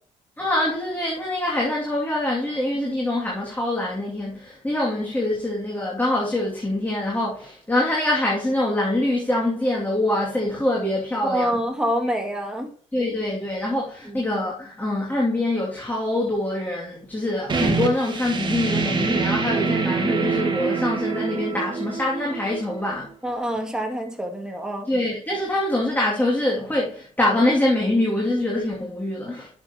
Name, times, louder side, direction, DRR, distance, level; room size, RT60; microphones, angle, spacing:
voice 1, 0.4-11.6 12.9-23.1 24.8-29.5, left 1 dB, 15° left, 2.6 m, -24 dB
voice 2, 11.2-12.7 14.1-14.2 23.2-24.9, equal, 5° right, 2.3 m, -26 dB
sound 1, 17.5-22.9, right 5 dB, 35° right, 1.9 m, -25 dB
11.0 x 7.1 x 3.0 m
cardioid pair, 95°, 14 cm